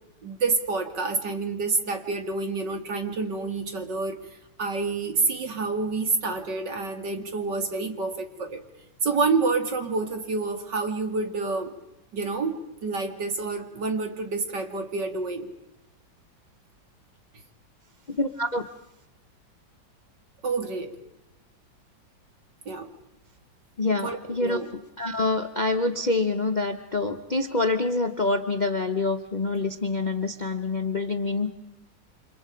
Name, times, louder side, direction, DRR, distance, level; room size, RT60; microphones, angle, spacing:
voice 1, 0.2-4.2 4.6-8.6 9.0-11.7 12.1-15.5 20.4-20.9 22.7-22.9 24.0-24.7, right 3 dB, 70° right, 5 dB, 2.9 m, -28 dB
voice 2, 18.2-18.6 23.8-24.6 25.0-31.5, left 3 dB, 35° left, 6 dB, 0.8 m, -26 dB
29.5 x 26.5 x 5.1 m, 0.88 s
omnidirectional pair, 2.0 m